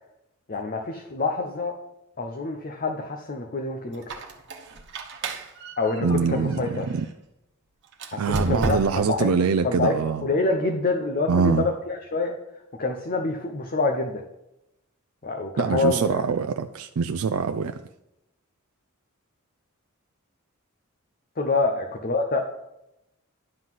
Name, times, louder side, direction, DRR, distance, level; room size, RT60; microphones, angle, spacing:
voice 1, 0.5-1.7 2.2-4.0 5.8-6.9 8.1-9.4 9.6-12.4 12.8-14.2 15.2-16.2 21.4-22.4, left 3 dB, 40° left, 0.8 m, -26 dB
Squeak, 3.9-7.1 7.9-9.2, right 1 dB, 55° right, 1.2 m, -33 dB
voice 2, 6.0-7.0 8.2-10.3 11.3-11.6 15.6-17.8, right 5 dB, 85° right, 0.4 m, -24 dB
11.0 x 3.9 x 7.5 m
head